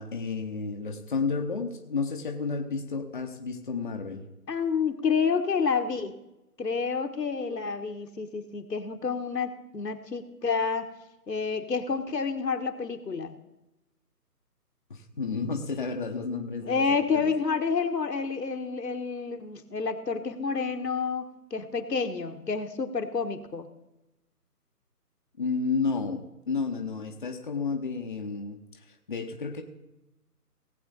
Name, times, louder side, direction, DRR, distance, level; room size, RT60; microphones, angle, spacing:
voice 1, 0.0-4.2 14.9-16.8 17.1-17.3 25.4-26.2 26.5-28.6 29.1-29.6, left 4 dB, 30° left, 3 dB, 0.8 m, -31 dB
voice 2, 4.5-6.1 6.6-10.9 11.3-13.3 16.6-23.7, left 5 dB, 80° left, 6 dB, 1.4 m, -29 dB
18.0 x 7.8 x 4.0 m, 0.93 s
figure-of-eight pair, 155°, 48 cm